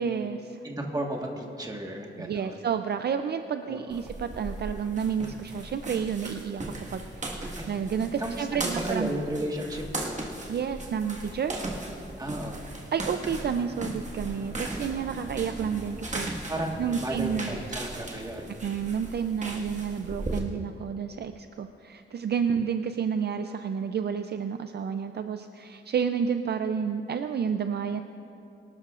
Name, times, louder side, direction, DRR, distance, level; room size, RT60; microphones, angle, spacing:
voice 1, 0.0-0.6 2.2-9.1 10.5-11.5 12.9-16.4 16.8-17.6 18.6-28.0, right 7 dB, 55° right, 8 dB, 0.4 m, -30 dB
voice 2, 0.6-2.6 3.7-4.0 7.6-7.7 8.2-10.3 12.2-12.6 16.5-18.5 22.6-22.7, right 1 dB, 20° right, 1 dB, 1.5 m, -34 dB
sound 1, 3.9-20.4, right 2 dB, 35° right, 1.6 m, -37 dB
23.5 x 12.0 x 2.5 m, 2.8 s
wide cardioid pair, 120°, 21 cm